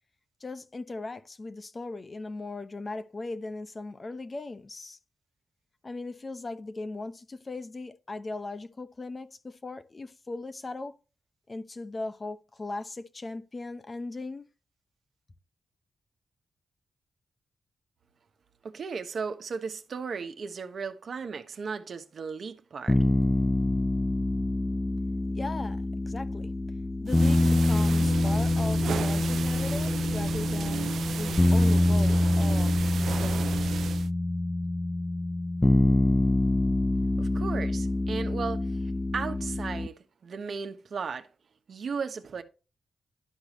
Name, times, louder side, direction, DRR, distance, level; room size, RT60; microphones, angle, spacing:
voice 1, 0.4-5.0 5.8-11.0 11.5-14.5 25.3-26.5 27.0-32.7 33.0-33.6, left 3 dB, 35° left, 0.9 m, -38 dB
voice 2, 18.6-23.0 37.2-38.7 39.1-41.3 41.7-42.4, right 5 dB, 65° right, 1.2 m, -35 dB
sound 1, 22.9-39.9, left 2 dB, 20° left, 0.6 m, -25 dB
sound 2, 27.1-34.1, right 8 dB, 80° right, 0.4 m, -35 dB
12.0 x 4.8 x 3.0 m
cardioid pair, 65°, 0 cm